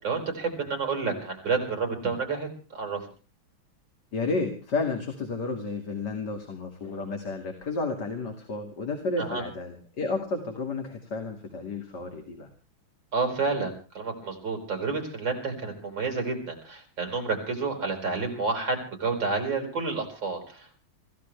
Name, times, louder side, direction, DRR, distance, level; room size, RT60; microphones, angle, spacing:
voice 1, 0.0-3.0 9.2-9.4 13.1-20.9, right 4 dB, 60° right, 4 dB, 5.8 m, -30 dB
voice 2, 4.1-12.5, left 3 dB, 55° left, 3 dB, 3.0 m, -32 dB
26.5 x 15.5 x 3.4 m, 0.37 s
omnidirectional pair, 2.2 m